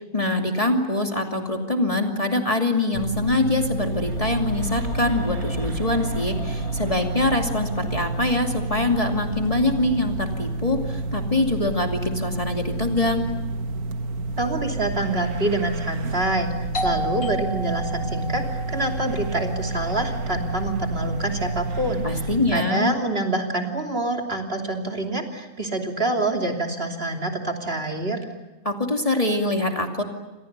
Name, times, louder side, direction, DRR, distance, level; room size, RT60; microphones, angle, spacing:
voice 1, 0.1-13.3 22.0-22.9 28.6-30.0, left 2 dB, 25° left, 3 dB, 2.6 m, -24 dB
sound 1, 2.9-22.6, right 3 dB, 90° right, 1.7 m, -29 dB
sound 2, 3.7-13.8 14.1-14.2, left 1 dB, 90° left, 8.2 m, -38 dB
voice 2, 14.4-16.5 16.8-28.2, right 2 dB, 40° right, 2 dB, 3.2 m, -26 dB
Doorbell, 16.7-22.1, right 1 dB, 70° left, 2.3 m, -34 dB
29.5 x 26.5 x 6.7 m, 1.1 s
omnidirectional pair, 1.5 m